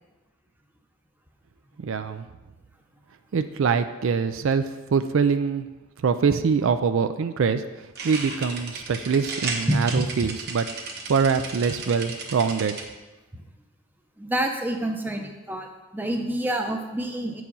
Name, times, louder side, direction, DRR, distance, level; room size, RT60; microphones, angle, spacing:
voice 1, 1.8-2.3 3.3-5.7 6.0-7.6 8.0-10.7 11.1-12.8, right 5 dB, 65° right, 10 dB, 0.4 m, -24 dB
sound 1, 7.8-12.8, right 3 dB, 45° right, 1.1 m, -35 dB
voice 2, 9.7-10.0 13.3-13.4 14.2-15.7 15.9-17.4, right 1 dB, 10° right, 3 dB, 0.6 m, -27 dB
8.7 x 4.8 x 5.3 m, 1.1 s
head